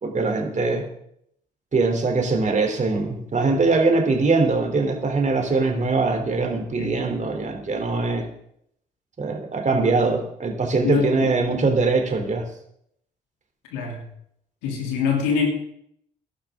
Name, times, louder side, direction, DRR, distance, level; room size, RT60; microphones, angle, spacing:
voice 1, 0.0-0.8 1.7-8.2 9.2-12.4, right 3 dB, 40° right, 3 dB, 3.3 m, -22 dB
voice 2, 9.7-10.1 10.8-11.3 13.7-14.0 14.6-15.5, left 6 dB, 85° left, 1 dB, 3.0 m, -25 dB
15.5 x 12.0 x 3.7 m, 0.71 s
hypercardioid pair, 50°, 19 cm